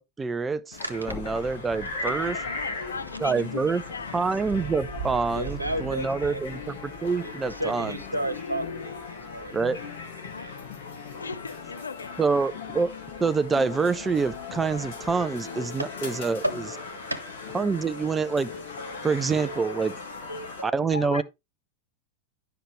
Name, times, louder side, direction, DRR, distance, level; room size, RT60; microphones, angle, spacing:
voice 1, 0.0-2.4 3.2-3.8 4.1-7.9 9.5-9.8 12.2-12.9 13.2-16.4 17.5-18.5 19.0-19.9 20.6-21.2, right 4 dB, 15° right, 0.5 m, -26 dB
sound 1, 0.7-20.6, left 5 dB, 60° left, 2.0 m, -38 dB
sound 2, 1.0-6.9, left 7 dB, 20° left, 0.7 m, -47 dB
sound 3, 1.4-11.2 12.1-15.3, right 6 dB, 45° right, 1.5 m, -45 dB
voice 2, 2.0-4.3 10.3-10.6 11.2-12.2 20.8-21.2, left 5 dB, 75° left, 0.6 m, -38 dB
voice 3, 5.3-6.6 7.2-9.5 10.4-10.5 15.7-18.2 18.5-19.1 19.4-20.9, right 1 dB, 85° right, 1.1 m, -35 dB
10.0 x 5.7 x 3.2 m
figure-of-eight pair, 90°, 0 cm